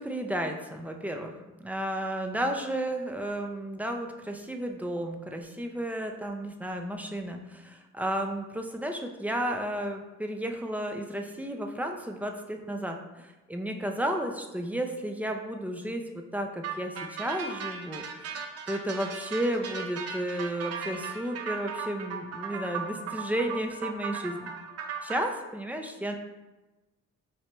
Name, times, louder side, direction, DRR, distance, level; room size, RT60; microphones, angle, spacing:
voice 1, 0.0-1.3 1.6-24.5 25.0-26.2, right 1 dB, 5° right, 4 dB, 0.4 m, -33 dB
sound 1, 16.6-25.2, right 6 dB, 55° right, 0.6 m, -37 dB
4.3 x 3.3 x 2.9 m, 1.1 s
cardioid pair, 90°, 30 cm